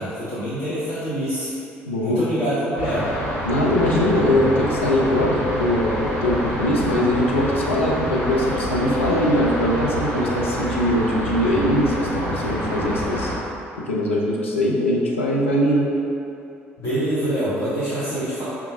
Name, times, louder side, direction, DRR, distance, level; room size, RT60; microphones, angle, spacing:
voice 1, 0.0-1.5 2.0-3.1 16.8-18.4, right 1 dB, 45° left, -12 dB, 1.0 m, -25 dB
voice 2, 1.9-2.2 3.4-13.3 13.9-15.9, left 1 dB, 85° left, -3 dB, 0.4 m, -21 dB
sound 1, 2.8-13.3, equal, 65° left, 1.3 m, -27 dB
5.4 x 2.3 x 2.7 m, 2.7 s
figure-of-eight pair, 50°, 7 cm